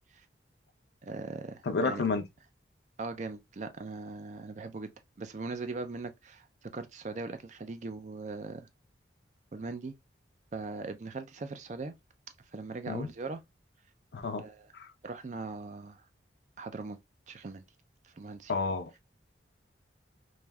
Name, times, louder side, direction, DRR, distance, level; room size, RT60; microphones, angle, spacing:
voice 1, 1.0-2.0 3.0-4.9 5.2-8.7 9.5-9.9 10.5-11.9 12.5-13.4 14.4-14.7 15.0-16.0 16.6-17.0 17.3-17.6 18.0-18.5, right 3 dB, 40° right, 0.4 m, -40 dB
voice 2, 1.7-2.3 12.9-13.1 14.1-14.5 14.7-14.9 18.5-18.9, left 4 dB, 65° left, 0.5 m, -30 dB
3.3 x 2.6 x 2.2 m
head